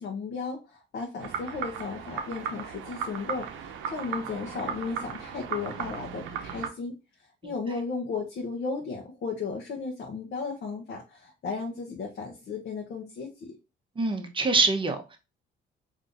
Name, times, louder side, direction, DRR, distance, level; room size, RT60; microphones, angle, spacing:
voice 1, 0.0-6.9 7.4-13.6, left 4 dB, 60° left, 0.8 m, -35 dB
sound 1, 1.2-6.7, right 7 dB, 80° right, 0.6 m, -36 dB
voice 2, 14.0-15.2, right 3 dB, 25° right, 0.7 m, -25 dB
3.6 x 2.7 x 2.5 m
cardioid pair, 90°, 20 cm